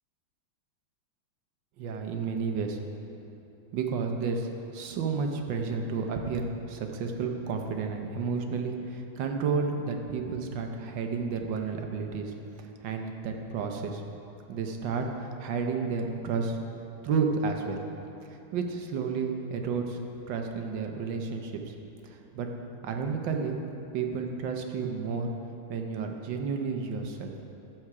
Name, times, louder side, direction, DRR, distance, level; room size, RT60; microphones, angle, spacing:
voice 1, 1.8-2.8 3.7-14.0 14.5-16.6 17.0-17.8 18.2-20.0 20.3-21.7 22.0-22.5 22.8-23.6 23.9-25.3 25.7-27.3, right 5 dB, 70° right, 3 dB, 1.4 m, -31 dB
10.5 x 7.8 x 4.8 m, 3.0 s
omnidirectional pair, 2.2 m